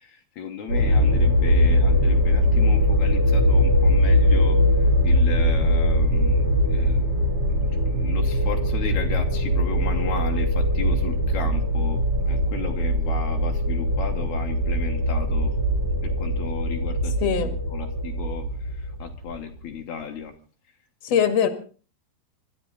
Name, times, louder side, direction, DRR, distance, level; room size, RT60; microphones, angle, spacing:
voice 1, 0.0-7.1 7.8-15.5 16.0-17.1 17.4-20.3 21.1-21.2, left 7 dB, 75° left, 2 dB, 1.7 m, -35 dB
sound 1, 0.7-19.6, equal, 35° right, 3.2 m, -21 dB
voice 2, 17.2-17.5 21.0-21.5, left 8 dB, 50° left, 8 dB, 2.1 m, -21 dB
26.0 x 12.5 x 4.0 m, 0.38 s
omnidirectional pair, 5.3 m